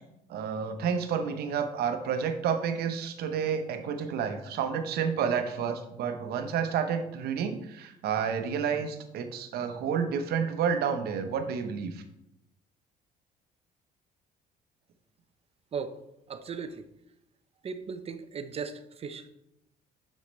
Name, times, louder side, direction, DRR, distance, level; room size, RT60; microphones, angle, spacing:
voice 1, 0.3-12.0, right 7 dB, 70° right, 1.0 m, -30 dB
voice 2, 16.3-16.8 17.6-19.3, right 5 dB, 35° right, 0.7 m, -37 dB
8.4 x 6.5 x 3.3 m
cardioid pair, 110°, 17 cm